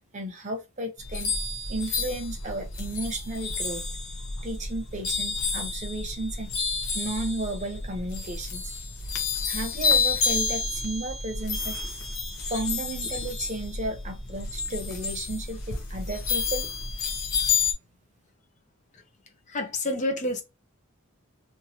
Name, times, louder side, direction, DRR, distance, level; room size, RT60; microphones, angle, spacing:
voice 1, 0.1-1.3 1.7-3.8 4.4-6.5 6.9-8.7 9.4-11.8 12.5-16.6, right 1 dB, 35° right, 0.8 m, -33 dB
sound 1, 1.0-17.7, left 4 dB, 65° left, 0.8 m, -30 dB
voice 2, 19.5-20.4, left 1 dB, 35° left, 0.6 m, -28 dB
3.0 x 2.4 x 2.8 m
head